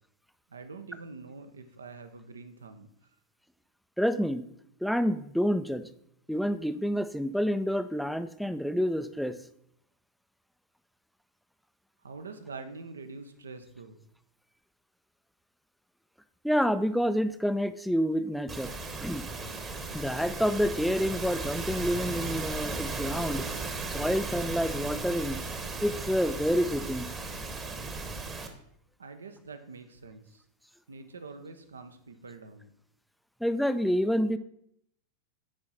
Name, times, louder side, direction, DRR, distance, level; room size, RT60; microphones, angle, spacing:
voice 1, 0.5-2.9 12.0-14.0 29.0-30.4 30.9-32.7, right 4 dB, 70° right, 9 dB, 0.8 m, -45 dB
voice 2, 4.0-4.4 4.8-5.8 6.3-9.4 16.4-18.7 19.0-19.2 19.9-23.5 23.9-25.4 25.8-27.1 33.4-34.4, equal, ahead, 11 dB, 0.4 m, -28 dB
sound 1, 18.5-28.5, right 3 dB, 20° right, 1.1 m, -36 dB
9.8 x 4.8 x 4.1 m, 0.71 s
figure-of-eight pair, 90°, 0 cm